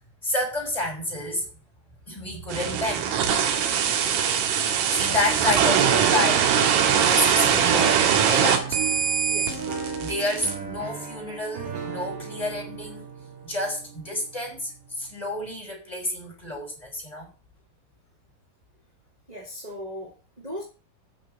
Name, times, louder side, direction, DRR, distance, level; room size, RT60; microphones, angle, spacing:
voice 1, 0.2-1.5 2.1-3.1 4.9-6.5 6.9-9.0 10.0-13.0 13.4-14.7 15.0-17.3, left 1 dB, 5° left, 4.9 m, -29 dB
sound 1, 2.5-10.5, right 8 dB, 80° right, 4.2 m, -22 dB
sound 2, 5.0-14.9, right 5 dB, 45° right, 4.5 m, -35 dB
voice 2, 9.3-9.6 19.3-20.6, equal, 15° right, 1.5 m, -38 dB
9.2 x 6.4 x 7.9 m
omnidirectional pair, 5.7 m